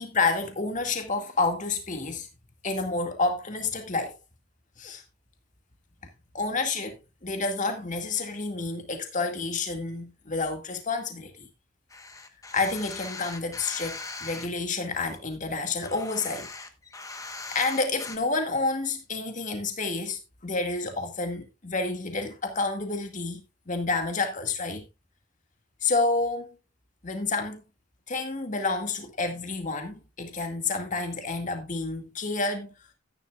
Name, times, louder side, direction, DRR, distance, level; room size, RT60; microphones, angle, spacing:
voice 1, 0.0-2.3 2.6-4.2 4.8-5.0 6.3-11.5 12.5-16.5 17.5-23.4 23.7-24.9 25.8-26.6 27.0-27.6 28.1-32.7, left 3 dB, 35° left, 2.0 m, -29 dB
sound 1, 11.9-14.5 15.0-18.2, left 3 dB, 15° left, 1.1 m, -40 dB
13.5 x 10.0 x 2.4 m
head